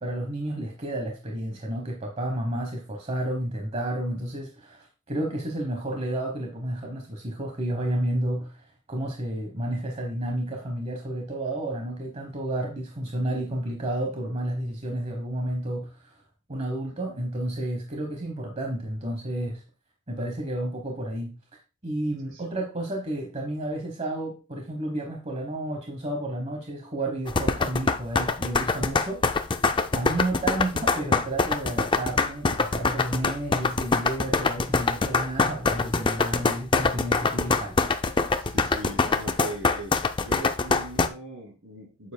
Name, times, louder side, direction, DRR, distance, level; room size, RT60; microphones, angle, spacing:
voice 1, 0.0-16.2 16.5-19.6 20.1-21.4 21.8-29.5 29.9-37.8, right 1 dB, 30° right, 1 dB, 1.1 m, -31 dB
sound 1, 27.3-41.1, left 4 dB, 20° left, 0.3 m, -24 dB
voice 2, 38.4-39.9 40.2-42.1, right 1 dB, 60° right, 2 dB, 2.9 m, -39 dB
9.2 x 7.4 x 2.2 m, 0.31 s
head